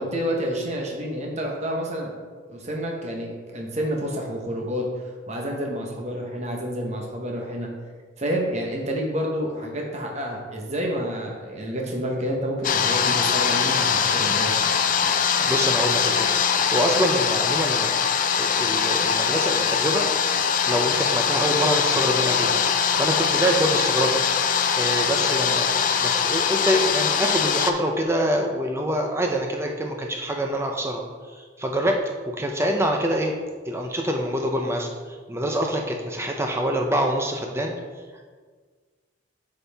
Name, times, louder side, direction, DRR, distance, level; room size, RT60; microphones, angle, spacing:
voice 1, 0.0-2.1 2.5-4.8 5.3-7.7 8.2-14.6, equal, 35° right, 0 dB, 1.0 m, -29 dB
sound 1, 12.6-27.7, left 7 dB, 40° left, 0.4 m, -22 dB
voice 2, 15.5-20.1 20.7-22.6 22.9-24.1 24.8-31.0 31.3-32.0 32.3-33.4 33.7-34.9 35.3-37.7, equal, 15° right, 2 dB, 0.5 m, -25 dB
8.4 x 5.5 x 3.4 m, 1.5 s
head